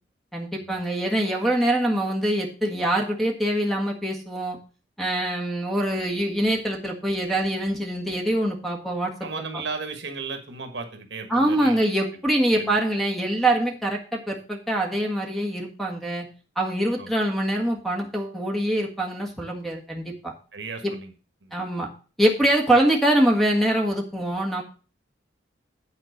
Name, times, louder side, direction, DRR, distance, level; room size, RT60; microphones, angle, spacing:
voice 1, 0.3-4.6 5.0-9.1 9.5-9.6 11.3-16.3 16.6-20.3 20.8-20.9 21.5-21.9 22.2-24.6, right 1 dB, ahead, 1 dB, 1.6 m, -24 dB
voice 2, 9.2-11.8 12.5-12.8 17.0-17.1 20.5-21.1 21.4-21.5, right 4 dB, 70° right, 6 dB, 1.5 m, -35 dB
9.4 x 4.4 x 6.6 m, 0.37 s
head